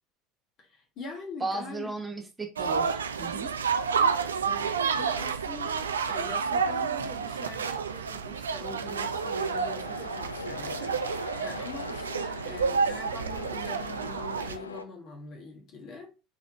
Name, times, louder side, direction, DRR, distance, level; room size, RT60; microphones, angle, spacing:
voice 1, 0.6-1.9 4.4-16.1, left 3 dB, 45° left, 1.6 m, -43 dB
voice 2, 1.4-3.5, right 2 dB, 15° right, 0.8 m, -35 dB
sound 1, 2.6-14.6, right 6 dB, 80° right, 0.4 m, -30 dB
sound 2, 8.9-14.8, left 4 dB, 85° left, 0.4 m, -41 dB
4.4 x 4.1 x 2.9 m
figure-of-eight pair, 70°, 0 cm